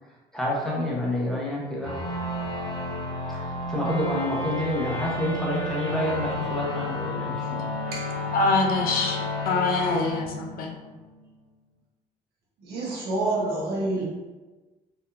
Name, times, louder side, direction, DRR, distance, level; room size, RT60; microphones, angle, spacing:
voice 1, 0.3-2.0 3.3-7.6, left 1 dB, 5° left, -5 dB, 1.1 m, -28 dB
sound 1, 1.8-11.2, left 1 dB, 30° left, 1.2 m, -31 dB
voice 2, 8.3-10.7, left 3 dB, 60° left, 1 dB, 0.7 m, -25 dB
voice 3, 12.6-14.0, right 2 dB, 70° right, -4 dB, 1.3 m, -27 dB
4.3 x 2.7 x 2.6 m, 1.2 s
cardioid pair, 110°, 17 cm